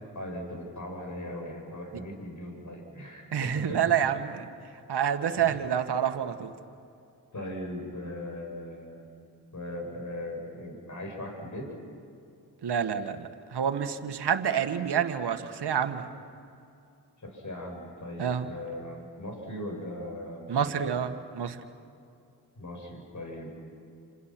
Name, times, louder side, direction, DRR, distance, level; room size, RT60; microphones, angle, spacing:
voice 1, 0.1-3.8 5.4-5.6 7.3-9.1 9.5-11.7 17.2-20.9 22.6-23.6, left 1 dB, 45° left, 2 dB, 8.0 m, -39 dB
voice 2, 3.3-4.5 4.9-6.5 12.6-16.1 18.2-18.5 20.5-21.6, right 8 dB, 65° right, 7 dB, 1.8 m, -28 dB
29.0 x 27.0 x 6.2 m, 2.6 s
supercardioid pair, 50°, 43 cm